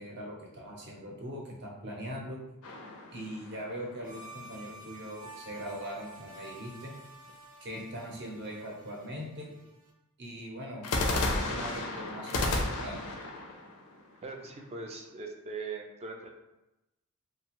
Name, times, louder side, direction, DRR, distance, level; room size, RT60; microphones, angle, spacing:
voice 1, 0.0-2.4 3.1-6.9 7.6-9.5 10.2-13.0, equal, 50° right, -2 dB, 0.7 m, -41 dB
sound 1, 2.6-4.1 10.8-14.8, left 2 dB, 85° left, 0.5 m, -33 dB
sound 2, 4.0-9.9, right 2 dB, 90° right, 0.7 m, -51 dB
voice 2, 14.2-16.3, right 4 dB, 30° right, 2 dB, 0.3 m, -40 dB
2.7 x 2.2 x 2.9 m, 0.95 s
head